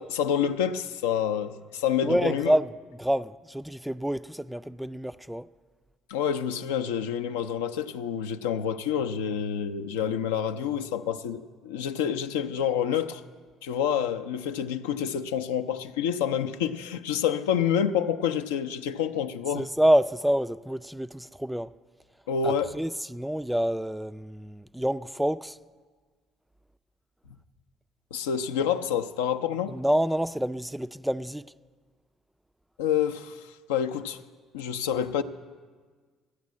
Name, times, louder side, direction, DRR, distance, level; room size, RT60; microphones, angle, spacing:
voice 1, 0.0-2.5 6.1-13.2 13.6-19.7 22.3-22.7 28.1-29.8 32.8-34.2 34.5-35.2, left 8 dB, 80° left, 0.4 m, -28 dB
voice 2, 2.0-2.7 3.0-5.5 19.5-21.7 22.4-25.6 29.7-31.4, equal, 5° right, 0.3 m, -27 dB
12.0 x 9.5 x 7.4 m
hypercardioid pair, 55°, 0 cm